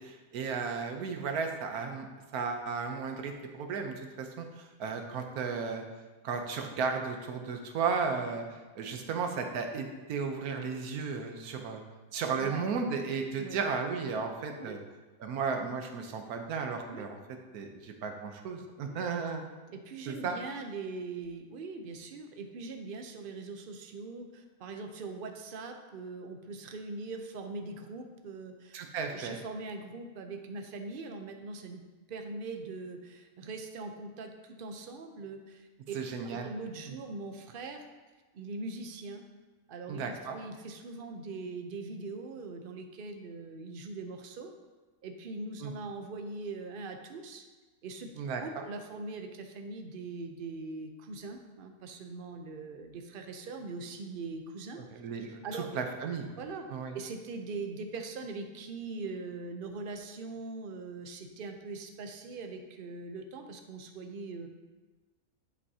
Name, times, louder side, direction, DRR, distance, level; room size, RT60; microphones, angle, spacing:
voice 1, 0.0-2.1 2.3-4.5 4.8-5.8 6.2-11.8 12.1-14.8 15.2-17.2 17.5-19.4 20.1-20.4 28.7-29.4 35.9-36.5 36.9-37.0 39.9-40.4 45.6-45.7 48.2-48.6 54.9-56.3 56.7-57.0, right 5 dB, 80° right, 5 dB, 1.3 m, -34 dB
voice 2, 19.7-28.8 29.1-35.9 36.3-37.8 38.3-39.2 39.7-44.5 45.0-47.4 47.8-48.1 48.4-54.8 55.2-55.7 56.4-56.7 56.9-64.5, right 3 dB, 50° right, 5 dB, 0.7 m, -41 dB
11.0 x 5.4 x 2.8 m, 1.3 s
omnidirectional pair, 1.6 m